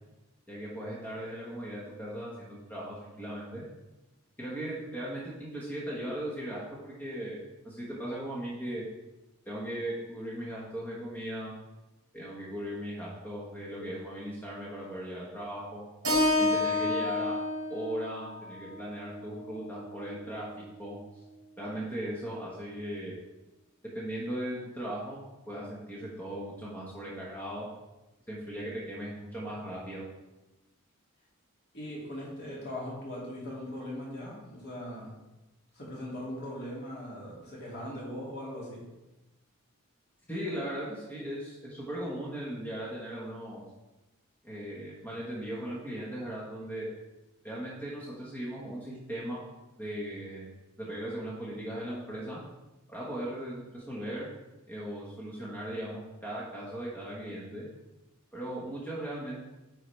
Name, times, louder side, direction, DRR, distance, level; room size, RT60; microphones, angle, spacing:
voice 1, 0.5-3.6 4.4-8.8 9.4-11.5 12.1-15.8 16.4-17.4 17.7-20.5 20.8-21.0 21.6-23.2 23.9-27.7 28.3-30.0 40.3-43.6 44.4-46.9 47.4-49.4 49.8-50.5 50.9-52.4 52.9-54.3 54.7-57.7 58.3-59.5, right 1 dB, 10° left, -6 dB, 1.3 m, -38 dB
Keyboard (musical), 16.0-20.3, left 2 dB, 55° right, 2.7 m, -30 dB
voice 2, 31.7-35.2 35.7-38.8, left 1 dB, 50° left, -5 dB, 2.5 m, -40 dB
9.3 x 4.9 x 3.4 m, 1.0 s
head